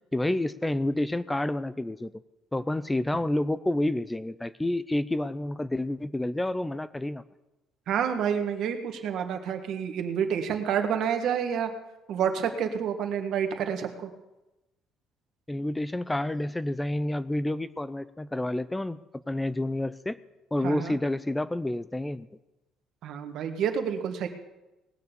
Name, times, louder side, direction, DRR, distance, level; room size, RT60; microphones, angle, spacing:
voice 1, 0.1-2.1 2.5-7.2 15.5-19.0 19.3-20.2 20.5-22.3, left 1 dB, 10° left, 16 dB, 0.4 m, -29 dB
voice 2, 7.9-11.7 12.1-14.1 20.6-21.0 23.0-24.3, right 8 dB, 65° right, 6 dB, 1.5 m, -29 dB
19.0 x 6.8 x 6.8 m, 1.0 s
cardioid pair, 105°, 0 cm